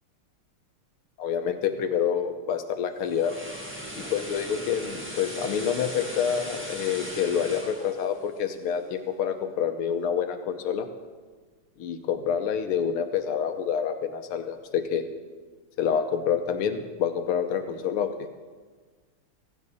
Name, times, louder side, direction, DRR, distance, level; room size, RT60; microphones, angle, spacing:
voice 1, 1.2-3.3 4.0-10.9 11.8-15.0 15.8-18.1, left 8 dB, 80° left, 7 dB, 1.8 m, -27 dB
sound 1, 2.8-9.0 9.4-9.6, equal, 5° right, 1.6 m, -39 dB
16.5 x 15.0 x 4.2 m, 1.4 s
omnidirectional pair, 2.4 m